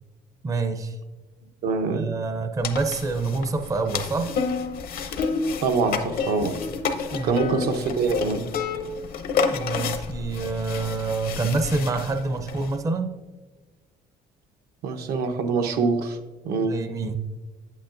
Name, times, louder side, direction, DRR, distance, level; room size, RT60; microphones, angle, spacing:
voice 1, 0.4-1.0 1.9-4.4 7.1-7.5 9.5-13.2 16.6-17.2, right 3 dB, 20° right, 8 dB, 0.5 m, -27 dB
voice 2, 1.6-2.1 5.6-6.6 7.2-8.5 14.8-16.2 16.4-16.8, right 4 dB, 70° right, 6 dB, 0.8 m, -24 dB
sound 1, 2.6-12.8, left 5 dB, 60° left, 0.7 m, -30 dB
8.5 x 8.2 x 2.5 m, 1.2 s
cardioid pair, 110°, 17 cm